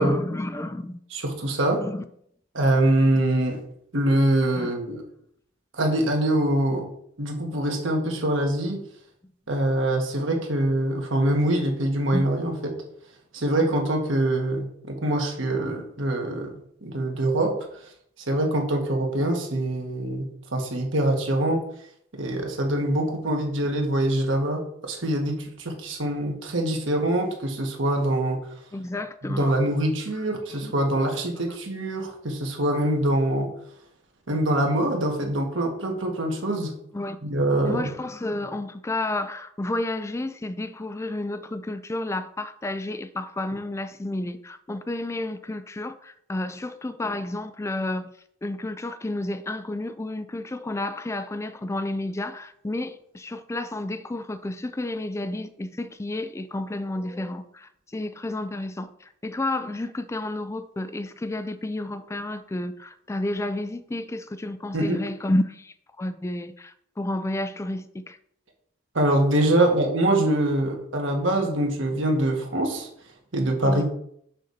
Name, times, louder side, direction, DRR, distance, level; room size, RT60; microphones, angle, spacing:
voice 1, 0.0-1.0 1.8-2.0 4.6-4.7 12.1-12.3 28.7-29.5 30.2-30.3 30.5-30.7 36.9-37.2 37.6-48.1 48.4-68.2 73.6-73.8, left 1 dB, 15° left, 0.3 m, -31 dB
voice 2, 1.1-1.8 2.5-3.6 3.9-5.0 5.7-6.8 7.2-8.8 9.5-12.8 13.3-16.5 16.8-17.5 18.3-21.6 22.1-28.4 29.3-33.5 34.3-36.7 37.2-37.8 64.7-65.0 68.9-72.9 73.3-73.8, right 1 dB, 70° right, 1.8 m, -24 dB
6.6 x 4.1 x 6.5 m
head